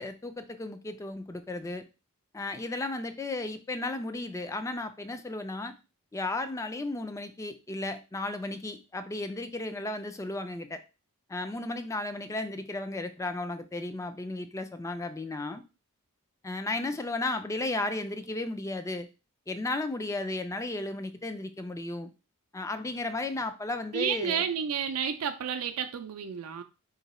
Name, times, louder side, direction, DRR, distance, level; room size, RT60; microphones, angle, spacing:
voice 1, 0.0-1.8 2.3-5.7 6.1-10.8 11.3-15.6 16.4-19.1 19.5-22.1 22.5-24.4, left 2 dB, 15° left, 0.3 m, -34 dB
voice 2, 23.9-26.6, right 7 dB, 70° right, 0.4 m, -31 dB
3.8 x 2.2 x 4.1 m
head